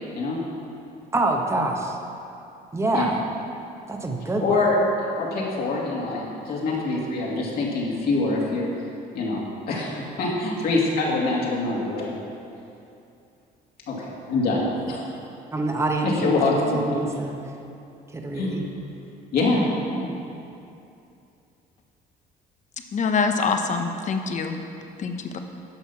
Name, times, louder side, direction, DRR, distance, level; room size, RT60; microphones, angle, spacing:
voice 1, 1.1-2.0 2.7-3.2 3.9-4.6 15.5-16.3 16.7-17.4 18.1-18.6, right 2 dB, 15° right, 2 dB, 1.1 m, -25 dB
voice 2, 4.4-8.7 9.1-12.1 13.9-15.0 16.0-16.8 18.3-18.6 19.3-20.1, left 2 dB, 65° left, -4 dB, 2.5 m, -24 dB
voice 3, 22.9-24.6 25.0-25.4, left 5 dB, 45° left, 5 dB, 0.9 m, -25 dB
11.0 x 6.6 x 5.8 m, 2.7 s
cardioid pair, 110°, 17 cm